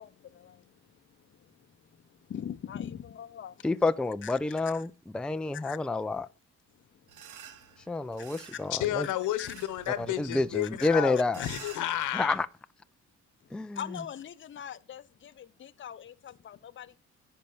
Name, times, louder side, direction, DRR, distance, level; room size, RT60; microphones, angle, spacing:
voice 1, 0.0-3.7 4.2-4.4 4.7-4.8 5.5-5.8 7.2-7.6 8.5-8.6 9.0-9.1 9.4-9.6 10.3-10.9 11.4-11.5 13.4-17.0, left 9 dB, 40° left, 0.7 m, -43 dB
voice 2, 3.6-6.3 7.9-9.1 10.0-11.4 12.1-12.5 13.5-13.8, left 3 dB, 5° left, 0.4 m, -29 dB
sound 1, 7.1-12.4, right 9 dB, 80° right, 1.2 m, -51 dB
voice 3, 8.7-12.4, left 13 dB, 80° left, 1.1 m, -31 dB
10.5 x 4.6 x 7.0 m
cardioid pair, 90°, 30 cm